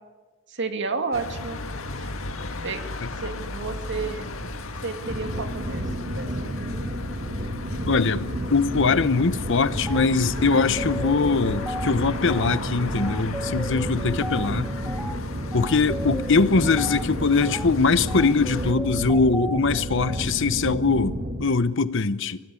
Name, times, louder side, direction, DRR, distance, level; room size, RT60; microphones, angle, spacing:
voice 1, 0.5-1.6 2.0-2.1 2.6-2.9 3.2-4.3 4.8-6.7, right 4 dB, 60° right, 2.3 m, -31 dB
sound 1, 1.1-18.7, left 2 dB, 85° left, 1.9 m, -36 dB
sound 2, 5.0-21.5, equal, 40° right, 1.8 m, -31 dB
voice 2, 7.8-14.7 15.5-22.4, left 4 dB, 65° left, 0.9 m, -22 dB
sound 3, 9.9-10.1 10.5-20.2, equal, 5° right, 1.1 m, -36 dB
25.0 x 18.5 x 8.4 m
head